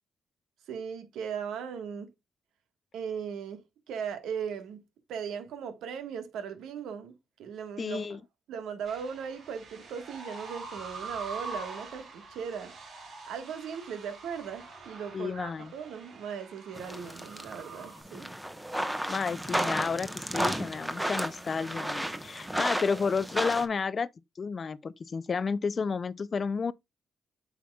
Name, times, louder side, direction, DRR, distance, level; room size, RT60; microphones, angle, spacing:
voice 1, 0.7-2.1 2.9-4.8 5.1-7.1 7.4-8.1 8.5-12.7 13.3-18.3, right 7 dB, 80° right, 1.4 m, -38 dB
voice 2, 7.8-8.2 15.1-15.7 19.1-24.1 24.4-26.7, left 5 dB, 40° left, 0.4 m, -31 dB
sound 1, 8.8-18.0, right 3 dB, 55° right, 4.0 m, -44 dB
sound 2, 16.8-23.7, right 1 dB, 5° right, 1.0 m, -33 dB
8.4 x 5.8 x 2.3 m
cardioid pair, 90°, 0 cm